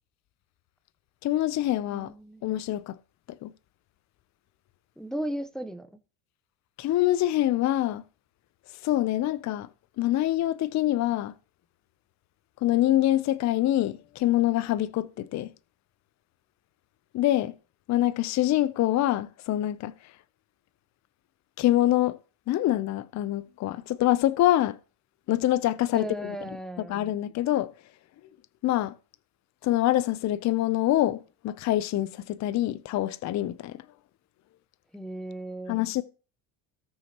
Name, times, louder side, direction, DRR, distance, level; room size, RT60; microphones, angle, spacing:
voice 1, 1.2-2.1 2.4-3.0 3.4-3.5 6.8-8.0 8.8-9.7 10.0-11.3 12.6-15.5 17.1-17.5 17.9-19.9 21.6-22.2 22.5-24.8 25.3-26.4 26.9-27.7 28.6-28.9 29.6-33.8 35.7-36.0, left 14 dB, 45° left, 0.6 m, -25 dB
voice 2, 1.9-2.4 5.0-5.9 25.9-26.9 34.9-35.8, right 1 dB, ahead, 0.7 m, -35 dB
18.0 x 6.1 x 2.9 m
cardioid pair, 110°, 39 cm